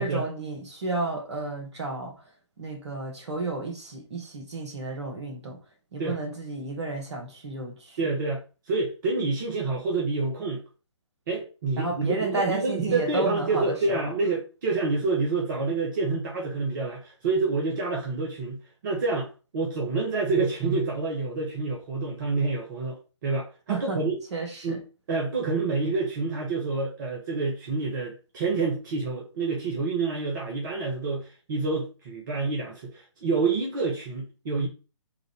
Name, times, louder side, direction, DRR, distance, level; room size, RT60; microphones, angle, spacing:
voice 1, 0.0-2.1 2.6-5.6 5.9-8.1 11.8-14.1 23.7-24.0 24.3-24.8, right 3 dB, 65° right, 1.6 m, -32 dB
voice 2, 8.0-10.6 11.3-24.2 24.6-24.8 25.1-34.7, right 3 dB, 40° right, 1.1 m, -28 dB
3.8 x 2.6 x 4.6 m
figure-of-eight pair, 130°, 16 cm